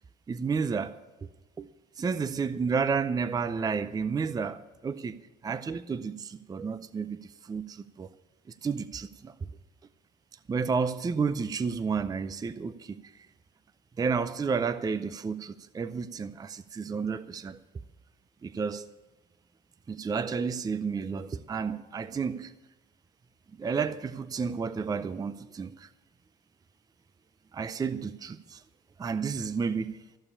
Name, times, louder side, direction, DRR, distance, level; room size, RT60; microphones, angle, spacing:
voice 1, 0.3-1.0 1.6-1.7 2.0-8.1 8.6-9.3 10.5-13.3 14.0-17.6 18.4-18.9 19.9-22.5 23.6-25.9 27.5-28.6 29.0-30.0, right 5 dB, 20° right, 0.5 m, -31 dB
14.5 x 7.0 x 9.7 m
cardioid pair, 110°, 17 cm